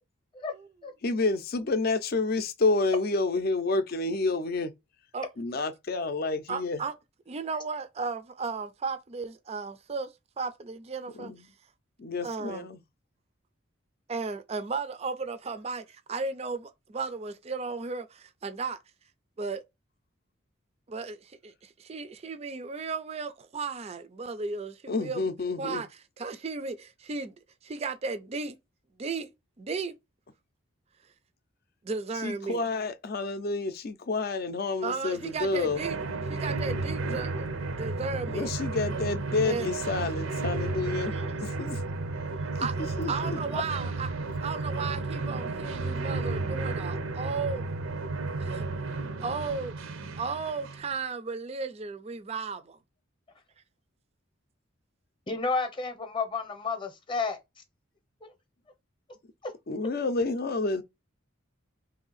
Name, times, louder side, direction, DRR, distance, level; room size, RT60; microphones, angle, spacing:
voice 1, 1.0-4.7 5.4-6.8 11.2-11.5 12.0-12.8 24.9-25.8 32.2-35.8 37.0-37.2 38.3-41.8 43.0-43.4 59.7-60.8, left 3 dB, 50° left, 0.5 m, -29 dB
voice 2, 6.5-7.0 7.3-10.1 10.4-11.3 12.2-12.7 14.1-18.8 19.4-19.6 20.9-25.2 25.6-25.9 26.2-27.3 27.6-28.6 29.0-29.3 29.6-30.0 31.8-32.7 34.8-36.0 36.3-37.5 37.8-38.5 39.4-39.7 41.1-41.2 42.6-44.1 44.4-47.6 48.4-48.7 49.2-49.7 50.2-52.8, right 4 dB, 30° right, 0.4 m, -34 dB
sound 1, 35.2-50.9, right 3 dB, 80° right, 0.6 m, -33 dB
voice 3, 55.3-57.4 58.2-58.3 59.4-59.5, left 4 dB, 25° left, 0.8 m, -31 dB
3.2 x 2.7 x 4.0 m
head